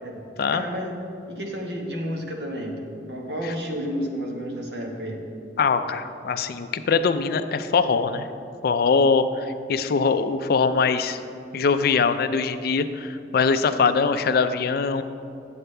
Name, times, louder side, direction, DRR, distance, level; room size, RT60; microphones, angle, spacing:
voice 1, 0.5-2.8 3.1-5.2, equal, 65° right, 1 dB, 1.2 m, -31 dB
voice 2, 5.6-8.3 8.6-11.2 11.5-15.0, left 5 dB, 60° left, 10 dB, 0.4 m, -22 dB
9.3 x 7.9 x 3.3 m, 2.5 s
head